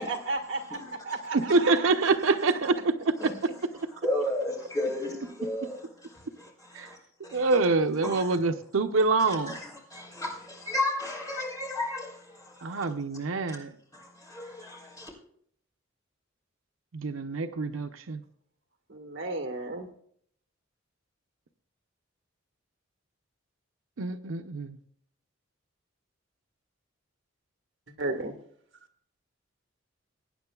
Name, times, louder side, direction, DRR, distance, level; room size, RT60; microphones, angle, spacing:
voice 1, 0.0-0.8 1.0-1.7 18.9-19.9 28.0-28.3, right 2 dB, 65° right, 1.6 m, -33 dB
voice 2, 0.5-1.0 3.2-3.3 4.0-5.8 6.1-7.0 7.2-7.5 8.0-8.3 9.5-12.8 13.5-13.6 13.9-15.1, left 2 dB, 20° left, 3.9 m, -34 dB
voice 3, 1.3-3.3 6.7-6.9 7.3-9.6 12.6-13.7 16.9-18.2 24.0-24.8, right 3 dB, 80° right, 0.7 m, -26 dB
22.0 x 9.7 x 2.3 m
head